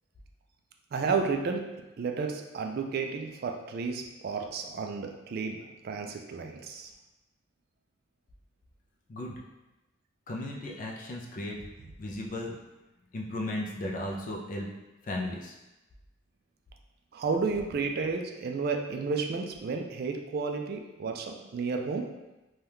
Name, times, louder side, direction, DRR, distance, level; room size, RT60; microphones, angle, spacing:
voice 1, 0.9-1.7 2.0-5.6 5.8-6.9 17.1-22.1, right 4 dB, 50° right, 3 dB, 0.3 m, -32 dB
voice 2, 10.3-11.6 12.0-12.5 13.1-14.7 15.0-15.5, left 1 dB, 45° left, -1 dB, 0.4 m, -35 dB
2.7 x 2.3 x 3.4 m, 1.0 s
head